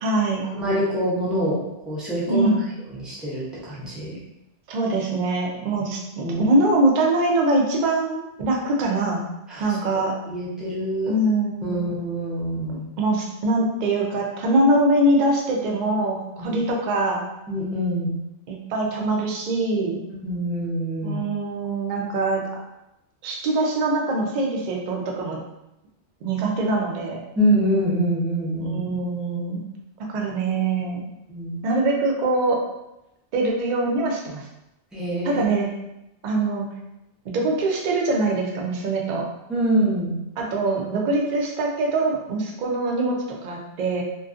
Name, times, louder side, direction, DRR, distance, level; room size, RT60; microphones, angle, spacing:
voice 1, 0.0-0.4 2.3-2.6 4.7-9.2 9.6-10.1 11.1-11.9 12.7-17.2 18.5-20.0 21.0-22.4 23.2-25.4 26.2-27.2 28.6-29.6 30.1-31.1 31.6-32.6 33.3-34.5 35.2-35.7 36.2-36.7 37.3-39.2 40.4-43.2 43.4-44.0, right 2 dB, 60° right, -1 dB, 0.5 m, -23 dB
voice 2, 0.6-2.5 2.9-4.2 5.7-5.8 6.2-6.4 9.5-9.8 10.3-11.1 11.6-12.9 16.5-16.6 17.5-18.2 20.2-21.2 27.4-28.8 31.3-31.6 34.9-35.4 39.5-40.1, equal, ahead, -8 dB, 0.4 m, -25 dB
2.5 x 2.3 x 2.4 m, 0.89 s
omnidirectional pair, 1.2 m